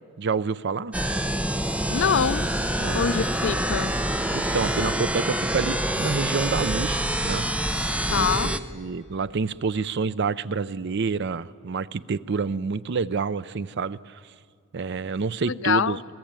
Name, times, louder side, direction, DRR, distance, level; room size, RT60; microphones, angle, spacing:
voice 1, 0.2-0.9 2.8-3.0 4.3-7.5 8.1-14.2 14.7-16.0, right 5 dB, 55° right, 16 dB, 0.5 m, -28 dB
sound 1, 0.9-8.6, right 1 dB, 5° right, 0.7 m, -26 dB
voice 2, 1.9-2.5 2.9-3.9 8.1-8.5 15.4-16.0, left 7 dB, 60° left, 16 dB, 0.5 m, -24 dB
sound 2, 2.0-6.2, left 2 dB, 25° right, 5.3 m, -49 dB
26.5 x 17.5 x 8.8 m, 2.4 s
head